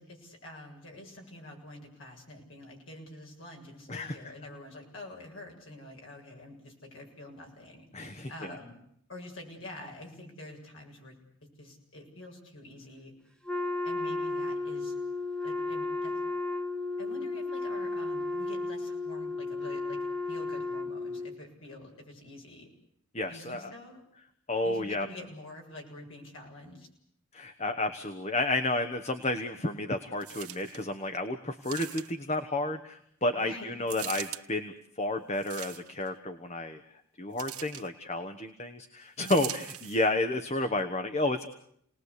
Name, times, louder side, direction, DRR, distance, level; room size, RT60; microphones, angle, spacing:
voice 1, 0.0-7.8 8.3-8.8 9.1-11.2 11.6-13.1 13.8-15.0 15.4-16.1 17.0-22.7 23.3-24.0 24.6-26.9 33.4-33.9 39.2-39.5, left 1 dB, 60° left, 1 dB, 7.3 m, -47 dB
voice 2, 7.9-8.6 23.1-23.7 24.5-25.1 27.3-34.7 35.0-36.8 37.2-41.5, left 2 dB, 30° left, 8 dB, 1.3 m, -31 dB
Wind instrument woodwind instrument, 13.5-21.4, left 3 dB, 5° left, 1.3 m, -33 dB
sound 1, 30.2-30.9 31.6-32.3 33.9-34.4 35.3-36.1 37.4-37.9 39.2-40.1 40.8-40.9, right 13 dB, 85° right, 1.3 m, -41 dB
29.5 x 19.5 x 8.3 m, 0.71 s
head